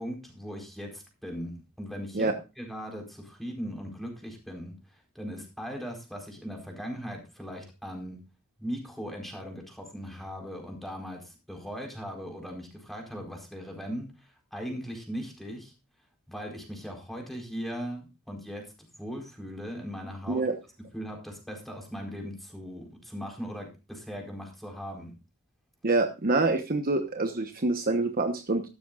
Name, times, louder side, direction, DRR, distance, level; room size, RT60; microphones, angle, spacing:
voice 1, 0.0-8.2 8.6-15.7 16.3-18.7 19.0-20.4 20.9-25.1, equal, ahead, 1 dB, 4.3 m, -39 dB
voice 2, 25.8-28.6, right 2 dB, 40° right, 6 dB, 1.1 m, -26 dB
14.5 x 13.0 x 2.4 m, 0.28 s
head